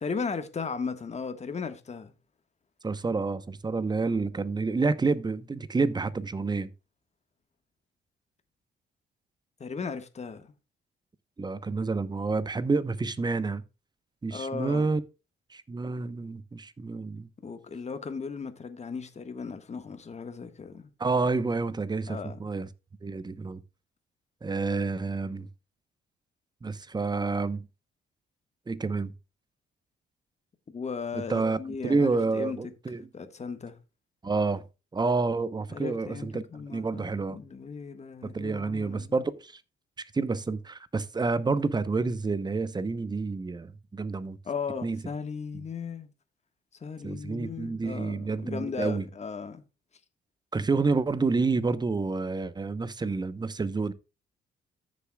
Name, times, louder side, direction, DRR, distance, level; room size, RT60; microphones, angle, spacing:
voice 1, 0.0-2.1 9.6-10.5 14.3-14.9 17.4-20.9 22.1-22.4 30.7-32.7 33.1-33.8 35.7-39.3 44.4-46.1 46.8-49.6, left 5 dB, 35° left, 1.5 m, -36 dB
voice 2, 2.8-6.7 11.4-13.6 14.2-15.0 15.5-17.3 21.0-22.7 23.0-23.6 24.4-25.5 26.6-27.7 28.7-29.1 31.1-33.1 34.2-34.6 34.9-36.4 36.7-37.4 38.2-39.6 40.1-44.4 44.8-45.0 45.5-45.6 47.0-49.1 50.5-53.9, right 4 dB, 20° right, 0.9 m, -29 dB
14.5 x 6.9 x 2.3 m
cardioid pair, 90°, 20 cm